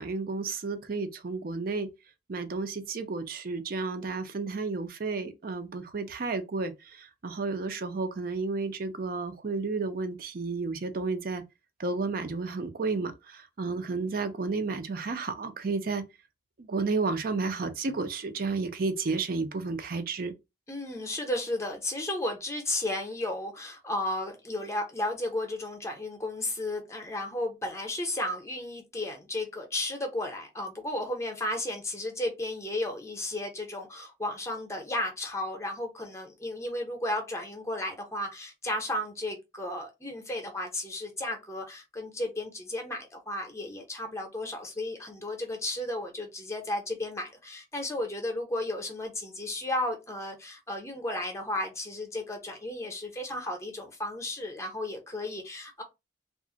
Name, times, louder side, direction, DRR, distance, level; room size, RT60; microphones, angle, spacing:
voice 1, 0.0-1.9 2.3-11.4 11.8-16.0 16.6-20.3, right 4 dB, 55° right, 0.5 m, -32 dB
voice 2, 20.7-55.8, left 1 dB, 15° left, 0.6 m, -34 dB
2.4 x 2.1 x 3.7 m
head